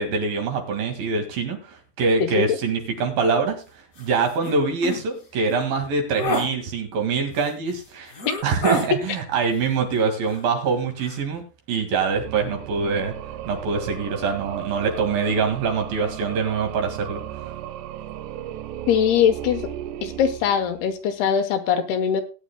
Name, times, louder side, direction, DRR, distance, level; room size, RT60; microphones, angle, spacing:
voice 1, 0.0-3.6 4.0-8.1 8.4-11.4 11.7-13.1 13.4-17.2, right 4 dB, 65° right, 4 dB, 3.6 m, -24 dB
voice 2, 2.2-2.6 8.9-9.0 18.9-19.6 20.0-22.2, left 8 dB, 75° left, 7 dB, 2.9 m, -21 dB
sound 1, 4.0-4.1 4.4-4.6 4.8-5.0 5.5-5.7 6.1-6.5 7.4-7.5 8.1-8.9 10.3-10.7 11.0-11.2, equal, 30° left, 1.7 m, -27 dB
sound 2, 12.0-21.1, right 11 dB, 85° right, 2.9 m, -35 dB
19.0 x 9.7 x 2.2 m, 0.32 s
omnidirectional pair, 4.8 m